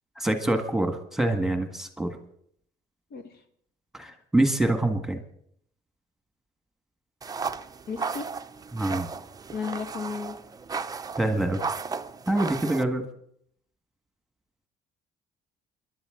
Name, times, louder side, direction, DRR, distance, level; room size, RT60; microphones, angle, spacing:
voice 1, 0.2-2.2 3.9-5.2 8.7-9.1 11.2-11.6 12.3-13.1, right 1 dB, ahead, 6 dB, 1.7 m, -25 dB
sound 1, 7.2-12.8, right 5 dB, 20° right, 0.6 m, -35 dB
voice 2, 7.9-8.3 9.5-10.3, left 5 dB, 65° left, 7 dB, 1.7 m, -33 dB
27.5 x 11.5 x 3.8 m, 0.67 s
cardioid pair, 110°, 17 cm